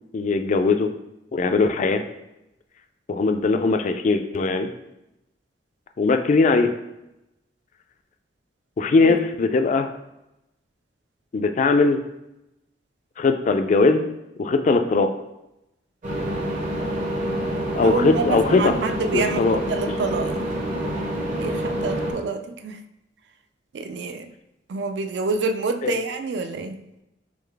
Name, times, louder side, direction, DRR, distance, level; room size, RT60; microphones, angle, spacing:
voice 1, 0.1-0.9 1.3-2.0 3.1-4.7 6.0-6.7 8.8-9.9 11.3-12.0 13.2-14.0 14.4-15.1 17.7-18.7 19.1-19.6 25.8-25.9, left 3 dB, 40° left, 7 dB, 0.3 m, -20 dB
sound 1, 16.0-22.1, right 1 dB, 45° right, 0.8 m, -27 dB
voice 2, 17.8-20.6 21.4-22.8 23.7-24.3 24.7-26.8, right 3 dB, 65° right, 8 dB, 0.4 m, -27 dB
3.8 x 3.1 x 3.3 m, 0.89 s
head